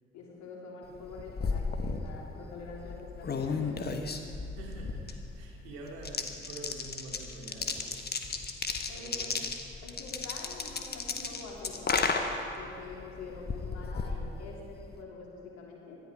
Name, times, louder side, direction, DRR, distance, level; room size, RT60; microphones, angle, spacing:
voice 1, 0.1-3.9 8.9-9.4 9.8-12.2 12.5-16.0, left 3 dB, 60° left, -2 dB, 3.5 m, -45 dB
Shaking and rolling dice, 0.9-15.0, left 4 dB, 30° left, 1.4 m, -35 dB
voice 2, 4.5-8.2 8.9-9.5, right 2 dB, 70° right, -1 dB, 2.5 m, -46 dB
19.0 x 13.0 x 5.0 m, 2.5 s
figure-of-eight pair, 45°, 32 cm